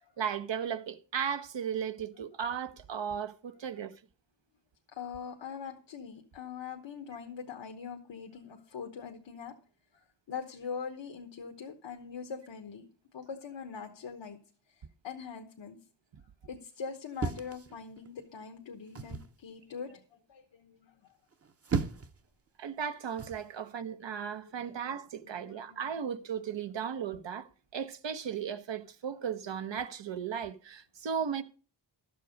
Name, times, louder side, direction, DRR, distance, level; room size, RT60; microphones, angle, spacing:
voice 1, 0.2-3.9 22.6-31.4, right 7 dB, 80° right, 1.0 m, -36 dB
voice 2, 4.9-9.5 9.9-12.8 13.1-14.4 14.7-15.8 16.5-21.1 24.6-24.7 25.2-26.0, left 6 dB, 85° left, 1.2 m, -43 dB
sound 1, 17.2-18.2 19.0-19.4 21.3-22.2 23.2-23.5, right 5 dB, 35° right, 0.7 m, -35 dB
12.5 x 7.5 x 5.1 m
wide cardioid pair, 80°, 43 cm